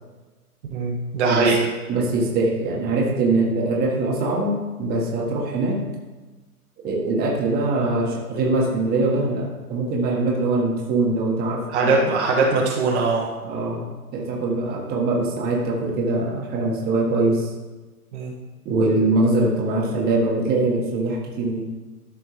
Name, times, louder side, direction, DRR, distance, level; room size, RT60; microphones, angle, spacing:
voice 1, 0.7-1.7 11.7-13.3 18.1-18.3, right 3 dB, 45° right, -2 dB, 1.4 m, -21 dB
voice 2, 1.9-5.8 6.8-11.9 13.4-17.5 18.6-21.6, right 2 dB, 20° right, -1 dB, 1.5 m, -22 dB
13.0 x 5.2 x 3.2 m, 1.2 s
figure-of-eight pair, 120°, 46 cm